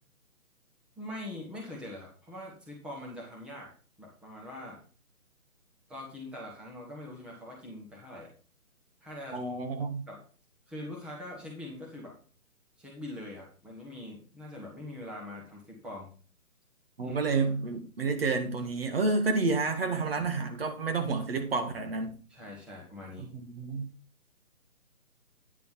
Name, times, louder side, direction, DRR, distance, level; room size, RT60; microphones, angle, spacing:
voice 1, 1.0-4.8 5.9-8.3 9.0-9.4 10.1-10.2 10.7-12.1 12.8-16.1 17.0-17.2 20.2-20.3 22.3-23.3, left 1 dB, ahead, 1.1 m, -43 dB
voice 2, 9.3-10.0 17.0-22.2 23.4-23.9, right 3 dB, 40° right, 1.7 m, -29 dB
9.4 x 7.0 x 4.4 m
figure-of-eight pair, 145°, 43 cm